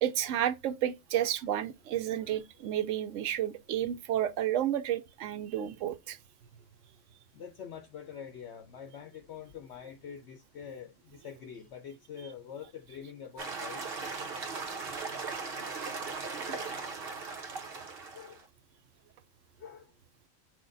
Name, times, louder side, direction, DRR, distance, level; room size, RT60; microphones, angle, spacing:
voice 1, 0.0-6.2, right 11 dB, 70° right, 0.9 m, -31 dB
voice 2, 7.3-13.8 18.1-18.4 19.6-19.8, left 7 dB, 60° left, 0.9 m, -45 dB
sound 1, 13.4-18.4, right 4 dB, 50° right, 1.1 m, -38 dB
6.1 x 2.2 x 3.8 m
omnidirectional pair, 1.4 m